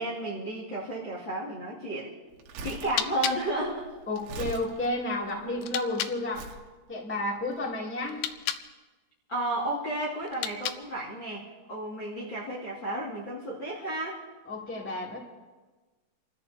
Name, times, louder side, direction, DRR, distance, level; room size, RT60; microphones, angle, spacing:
voice 1, 0.0-2.1 2.6-3.9 9.3-14.2, right 1 dB, 35° left, -5 dB, 2.5 m, -32 dB
Crumpling crinkling, 2.3-5.6 6.3-6.7 7.4-7.5, right 3 dB, 80° right, 3.5 m, -41 dB
sound 1, 2.8-6.2 8.0-8.7 10.2-11.1, left 11 dB, 80° left, 2.5 m, -36 dB
voice 2, 4.1-6.4 6.9-8.2 14.4-15.2, left 2 dB, 5° left, -4 dB, 1.1 m, -31 dB
29.0 x 13.5 x 2.9 m, 1.3 s
omnidirectional pair, 5.4 m